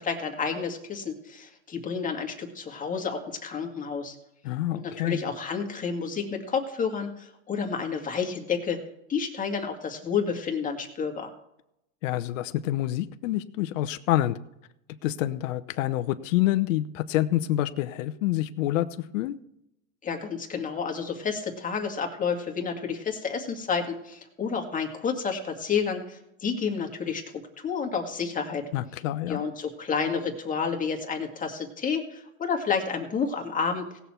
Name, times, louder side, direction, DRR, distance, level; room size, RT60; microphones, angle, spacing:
voice 1, 0.0-4.2 4.7-8.8 9.1-11.3 20.0-27.2 27.6-28.6 29.3-33.9, left 6 dB, 20° left, 3 dB, 2.1 m, -30 dB
voice 2, 4.4-5.2 12.0-14.4 15.0-18.9 19.1-19.4 28.7-29.4, left 14 dB, 70° left, 11 dB, 0.9 m, -27 dB
18.0 x 7.0 x 4.4 m, 0.81 s
supercardioid pair, 125°, 40 cm